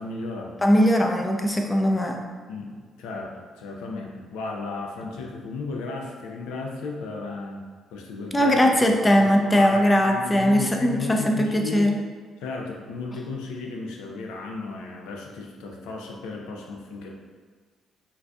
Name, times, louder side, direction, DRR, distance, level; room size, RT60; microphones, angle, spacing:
voice 1, 0.0-0.6 2.5-7.6 7.9-8.6 8.8-8.9 9.2-12.0 12.4-17.1, left 3 dB, 85° left, 0 dB, 0.4 m, -35 dB
voice 2, 0.6-2.2 8.3-12.0, equal, 20° left, 3 dB, 0.5 m, -20 dB
3.8 x 2.5 x 2.2 m, 1.5 s
supercardioid pair, 55°, 0 cm